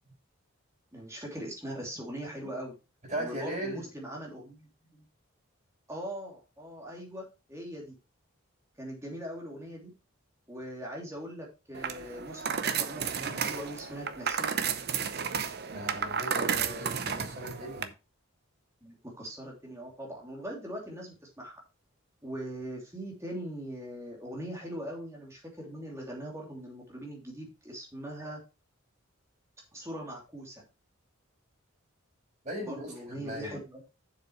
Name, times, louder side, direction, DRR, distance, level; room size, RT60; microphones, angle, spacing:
voice 1, 0.9-2.7 3.2-5.1 5.9-7.9 8.8-9.9 10.5-14.5 16.3-17.5 18.8-21.6 22.2-28.4 29.7-30.6 32.6-33.8, equal, 15° right, 2.8 m, -41 dB
voice 2, 3.1-3.9 15.7-17.9 32.4-33.6, right 1 dB, 30° right, 5.5 m, -38 dB
sound 1, 11.7-17.9, right 7 dB, 45° right, 0.7 m, -32 dB
7.3 x 6.6 x 4.5 m
head